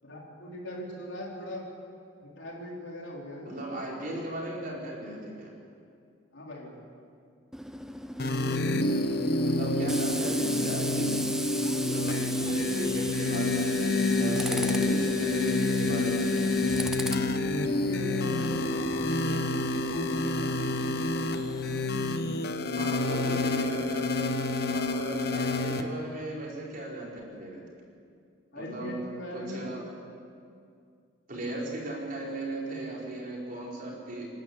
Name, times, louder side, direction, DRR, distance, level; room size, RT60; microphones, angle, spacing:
voice 1, 0.0-1.6 2.2-3.8 6.3-6.8 12.3-12.6 14.5-14.9 17.5-20.6 28.5-29.8, left 1 dB, 75° left, -3 dB, 4.0 m, -41 dB
voice 2, 3.4-5.5 9.4-11.3 11.8-13.8 14.2-16.4 22.8-27.7 28.5-29.0 29.3-29.8 31.3-34.3, right 1 dB, 45° right, -3 dB, 5.0 m, -36 dB
Tools, 7.5-21.9, right 1 dB, 5° right, 0.6 m, -37 dB
sound 1, 8.2-25.8, left 2 dB, 55° left, 1.2 m, -28 dB
28.5 x 12.0 x 8.3 m, 2.4 s
head